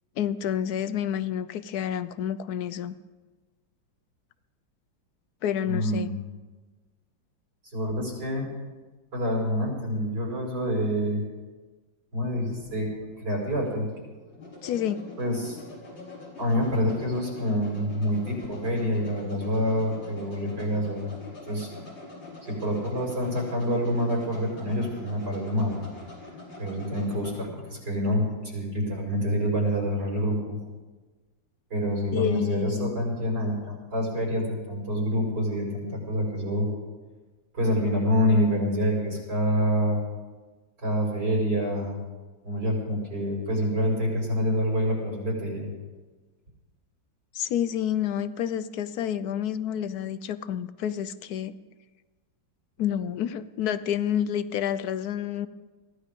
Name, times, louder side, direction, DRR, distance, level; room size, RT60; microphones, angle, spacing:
voice 1, 0.2-2.9 5.4-6.1 14.6-15.1 32.1-32.9 47.3-51.6 52.8-55.5, left 9 dB, 70° left, 14 dB, 1.0 m, -29 dB
voice 2, 5.7-6.1 7.7-8.5 9.1-11.2 12.1-12.9 13.2-13.9 15.2-15.6 16.4-21.1 21.5-21.7 22.4-25.8 26.6-30.6 31.7-36.7 37.5-40.0 40.8-42.0 42.4-45.7, equal, 65° right, -2 dB, 6.4 m, -27 dB
sound 1, 12.1-27.5, left 2 dB, 90° left, 6.3 m, -44 dB
23.0 x 15.5 x 3.7 m, 1.3 s
omnidirectional pair, 2.1 m